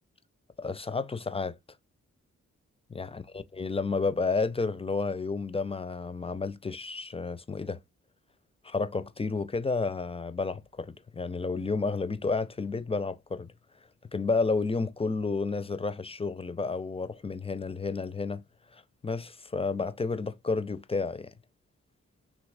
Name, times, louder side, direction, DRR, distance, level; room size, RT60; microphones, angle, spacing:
voice 1, 0.6-1.6 2.9-7.8 8.6-13.5 14.1-18.4 18.7-21.3, left 4 dB, 20° left, 0.4 m, -31 dB
2.9 x 2.5 x 3.3 m
cardioid pair, 50°, 31 cm